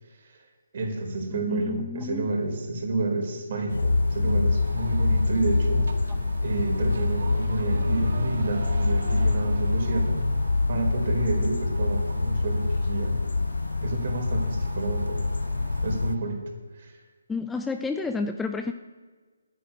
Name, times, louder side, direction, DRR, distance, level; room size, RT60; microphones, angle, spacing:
voice 1, 0.7-6.1 6.4-10.3 10.7-13.2 13.8-15.2 15.8-16.4 16.7-17.0, right 2 dB, 45° right, 2 dB, 4.7 m, -30 dB
voice 2, 1.3-2.3 17.3-18.7, left 4 dB, 5° left, 6 dB, 0.4 m, -30 dB
sound 1, 3.5-16.4, right 3 dB, 65° right, 2.2 m, -43 dB
sound 2, 3.7-16.2, left 3 dB, 90° left, 0.3 m, -25 dB
11.0 x 9.3 x 10.0 m, 1.4 s
hypercardioid pair, 165°, 0 cm